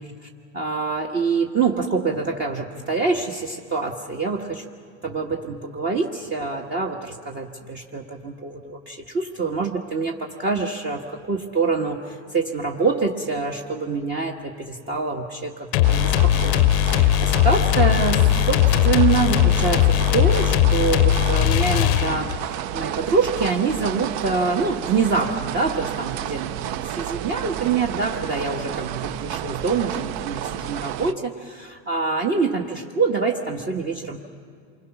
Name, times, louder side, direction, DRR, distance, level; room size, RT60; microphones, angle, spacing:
voice 1, 0.5-4.6 5.0-34.2, right 4 dB, 30° right, 1 dB, 1.3 m, -25 dB
sound 1, 15.7-22.5, left 13 dB, 65° left, 0.6 m, -19 dB
sound 2, 15.8-31.1, right 12 dB, 50° right, 0.5 m, -31 dB
28.0 x 21.5 x 5.9 m, 2.2 s
supercardioid pair, 125°, 35 cm